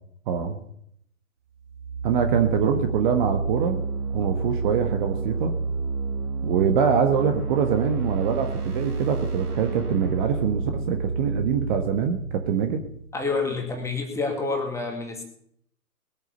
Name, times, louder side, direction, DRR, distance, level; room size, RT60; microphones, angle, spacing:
voice 1, 0.3-0.6 2.0-3.8 4.1-5.6 6.4-12.9, right 7 dB, 35° right, 6 dB, 1.6 m, -24 dB
sound 1, 1.6-13.4, right 4 dB, 90° right, 2.6 m, -29 dB
voice 2, 13.1-15.2, left 3 dB, 5° left, 2 dB, 2.3 m, -28 dB
20.5 x 9.1 x 5.3 m, 0.69 s
figure-of-eight pair, 135°, 45 cm